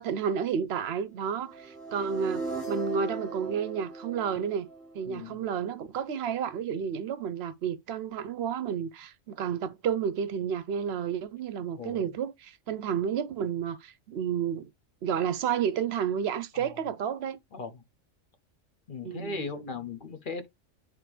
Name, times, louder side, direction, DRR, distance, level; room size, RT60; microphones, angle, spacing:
voice 1, 0.0-4.7 4.9-14.7 15.0-17.4 19.0-19.4, right 7 dB, 65° right, 0.7 m, -31 dB
sound 1, 1.5-5.5, right 3 dB, ahead, 4.7 m, -38 dB
voice 2, 5.1-5.4 11.8-12.1 16.5-16.7 17.5-17.7 18.9-20.5, left 4 dB, 50° left, 0.9 m, -37 dB
8.9 x 3.5 x 3.2 m
omnidirectional pair, 1.3 m